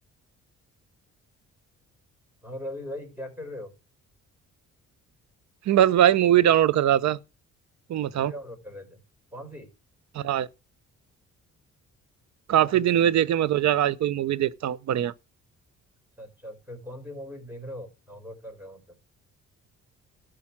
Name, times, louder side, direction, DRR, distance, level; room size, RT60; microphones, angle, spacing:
voice 1, 2.4-3.7 8.0-9.0 9.3-9.7 12.6-12.8 16.2-19.0, left 1 dB, 5° right, 5.0 m, -40 dB
voice 2, 5.7-7.2 7.9-8.3 10.1-10.5 12.5-15.1, right 11 dB, 65° right, 0.7 m, -21 dB
12.5 x 5.0 x 7.2 m
cardioid pair, 90°, 30 cm